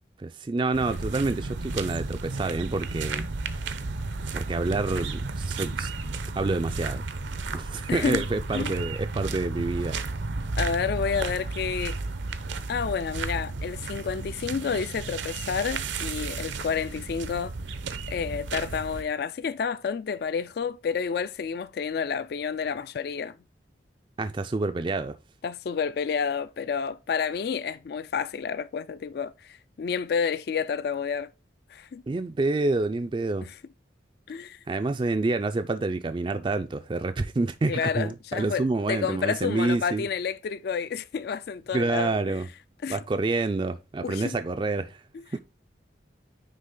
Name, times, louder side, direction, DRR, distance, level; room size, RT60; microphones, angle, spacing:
voice 1, 0.2-3.2 4.3-5.9 6.4-7.0 7.5-10.0 24.2-25.2 32.1-33.5 34.7-40.1 41.7-42.5 42.9-45.0 45.3-45.4, right 3 dB, 25° right, 0.3 m, -28 dB
sound 1, 0.7-19.0, right 3 dB, 75° right, 0.7 m, -33 dB
voice 2, 7.9-8.2 8.5-8.7 10.6-12.0 12.7-17.5 18.1-23.4 25.4-31.3 31.7-32.0 33.4-33.5 34.3-34.6 37.7-42.4 42.8-43.0 44.0-44.2 45.1-45.2, left 6 dB, 55° left, 0.3 m, -30 dB
9.6 x 3.3 x 3.7 m
head